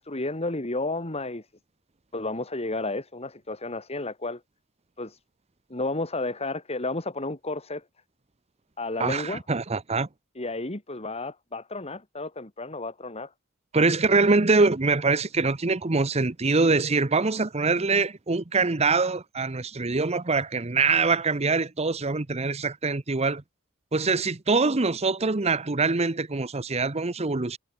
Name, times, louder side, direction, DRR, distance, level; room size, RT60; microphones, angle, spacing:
voice 1, 0.0-1.5 2.1-4.4 5.0-5.2 5.7-7.8 8.8-9.4 10.4-13.3, left 2 dB, 30° left, 2.3 m, -32 dB
voice 2, 9.0-10.1 13.7-23.4 23.9-27.6, right 3 dB, 30° right, 0.9 m, -24 dB
head